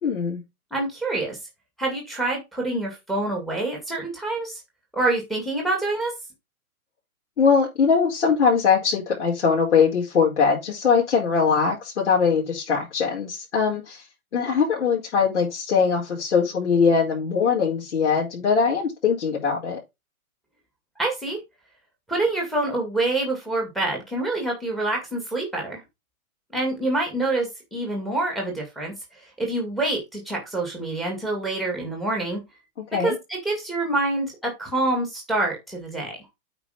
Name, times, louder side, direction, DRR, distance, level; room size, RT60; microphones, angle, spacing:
voice 1, 0.0-0.4 7.4-14.0 14.3-19.8 32.9-33.2, left 6 dB, 50° left, 4.7 m, -21 dB
voice 2, 0.7-1.4 1.8-4.6 4.9-6.1 21.0-21.4 22.1-25.8 26.5-28.9 29.4-32.4 33.0-33.1 33.4-36.1, right 2 dB, ahead, 2.0 m, -26 dB
8.8 x 5.1 x 4.9 m
hypercardioid pair, 175°, 44 cm